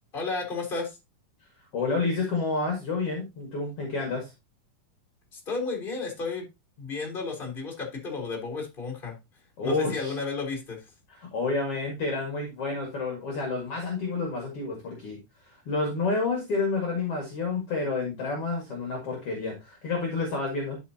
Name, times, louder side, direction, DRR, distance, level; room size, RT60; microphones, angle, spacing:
voice 1, 0.1-1.0 5.3-6.4 6.8-9.1 9.6-10.8, left 4 dB, 15° left, 0 dB, 3.3 m, -33 dB
voice 2, 1.7-4.3 9.6-10.2 11.1-20.8, left 3 dB, 45° left, 1 dB, 2.6 m, -29 dB
12.0 x 5.6 x 2.8 m, 0.23 s
omnidirectional pair, 3.9 m